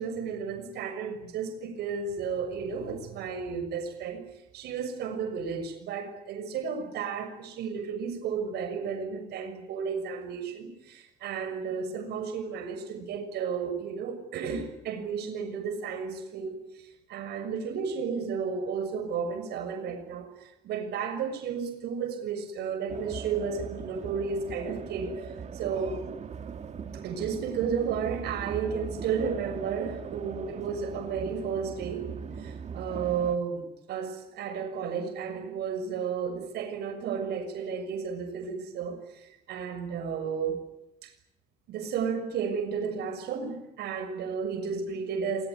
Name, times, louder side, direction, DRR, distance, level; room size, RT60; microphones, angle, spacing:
voice 1, 0.0-4.3 4.5-26.0 26.9-32.1 32.4-40.6 41.0-41.1 41.7-45.5, right 6 dB, 75° right, 8 dB, 6.5 m, -33 dB
sound 1, 22.9-33.4, right 6 dB, 45° right, 2.5 m, -40 dB
27.0 x 20.0 x 9.7 m, 0.87 s
cardioid pair, 110°, 17 cm